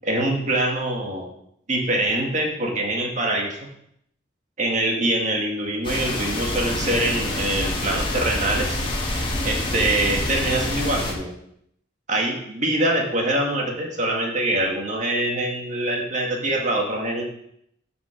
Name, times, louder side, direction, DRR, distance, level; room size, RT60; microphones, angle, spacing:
voice 1, 0.0-1.3 1.7-3.7 4.6-8.8 9.4-11.4 12.1-17.2, right 1 dB, 35° right, 0 dB, 1.9 m, -24 dB
sound 1, 5.8-11.1, left 1 dB, 25° left, 1.6 m, -26 dB
10.5 x 6.1 x 5.1 m, 0.72 s
head